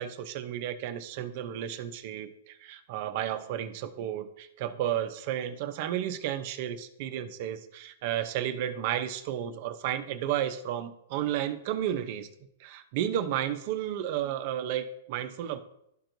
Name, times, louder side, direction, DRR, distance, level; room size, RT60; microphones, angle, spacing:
voice 1, 0.0-12.3 12.6-15.6, right 11 dB, 50° right, 9 dB, 0.7 m, -32 dB
12.0 x 4.4 x 2.7 m, 0.77 s
hypercardioid pair, 145°, 0 cm